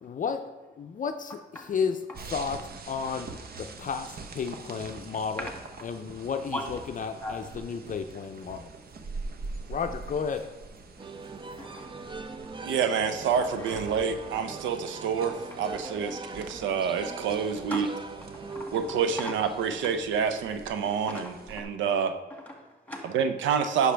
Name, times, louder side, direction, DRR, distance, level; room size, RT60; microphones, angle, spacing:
voice 1, 0.0-2.0 2.3-3.3 3.6-5.5 5.8-8.7 9.7-10.5, left 6 dB, 45° left, 7 dB, 0.5 m, -33 dB
sound 1, 2.1-21.6, right 3 dB, 55° right, 0.9 m, -44 dB
sound 2, 11.0-20.2, right 4 dB, 25° right, 0.5 m, -42 dB
voice 2, 11.6-12.0 13.6-13.8 17.7-18.0 18.3-19.4 20.8-21.7 22.5-23.2, left 1 dB, 10° left, 1 dB, 2.2 m, -38 dB
voice 3, 12.6-17.9 18.7-22.1 23.0-23.9, right 6 dB, 90° right, 9 dB, 0.7 m, -28 dB
9.8 x 6.4 x 3.4 m, 1.2 s
cardioid pair, 80°, 19 cm